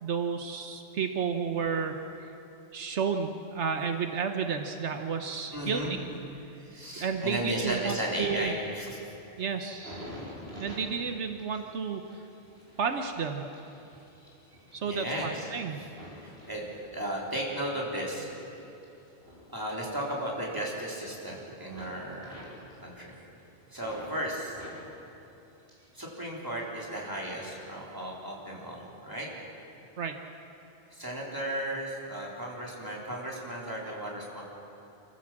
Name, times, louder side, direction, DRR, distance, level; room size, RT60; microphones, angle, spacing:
voice 1, 0.0-2.4 2.7-6.0 6.7-8.5 9.4-10.1 10.6-12.2 12.8-13.5 14.7-15.8 30.0-30.1, right 6 dB, 80° right, 6 dB, 1.3 m, -32 dB
voice 2, 5.5-5.9 6.7-9.0 14.8-15.5 16.2-16.6 16.9-18.3 19.5-22.4 22.8-23.2 23.7-24.6 25.9-29.3 30.9-34.4, right 1 dB, 20° right, -3 dB, 3.8 m, -35 dB
sound 1, 9.6-17.3 17.8-20.4 20.6-21.3 21.6-24.1 24.5-26.0 26.3-27.0 27.6-27.8, equal, 60° right, 5.0 m, -49 dB
26.5 x 15.0 x 7.6 m, 2.9 s
omnidirectional pair, 1.2 m